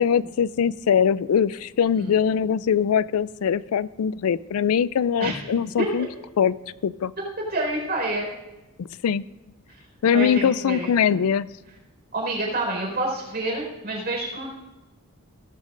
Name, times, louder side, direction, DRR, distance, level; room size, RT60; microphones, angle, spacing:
voice 1, 0.0-6.1 6.4-6.5 6.8-7.1 8.8-9.2 10.0-11.5, left 7 dB, 85° left, 18 dB, 0.4 m, -22 dB
voice 2, 7.5-8.3 9.7-9.8 10.1-11.2 12.1-14.5, right 2 dB, 45° right, -1 dB, 4.7 m, -28 dB
17.5 x 13.5 x 2.5 m, 1.0 s
head